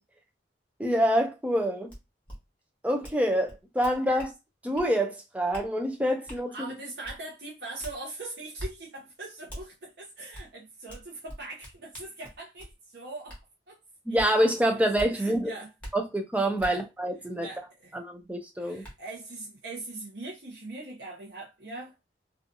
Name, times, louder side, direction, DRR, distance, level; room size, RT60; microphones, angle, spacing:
voice 1, 0.8-1.9 2.8-4.3 4.6-6.5 14.1-15.5 15.9-17.5 17.9-18.8, equal, 10° right, 0.4 m, -26 dB
sound 1, 1.9-2.0 2.3-2.4 3.0-3.2 3.5-4.3 4.7-4.9 5.5-5.7 6.3-6.4 7.0-7.2 7.8-8.0 8.6-8.7 9.5-9.6 10.3-10.5 10.9-12.7 13.3-13.4 14.2-14.3 15.0-15.1 15.8-15.9 16.6-16.7 18.2-18.3 18.8-18.9, equal, 10° left, 1.0 m, -41 dB
voice 2, 6.5-13.4 13.7-13.8 14.1-14.2 14.7-14.8 15.1-15.7 16.6-16.8 17.3-17.9 18.6-21.9, right 2 dB, 70° right, 0.7 m, -41 dB
2.5 x 2.4 x 2.6 m
head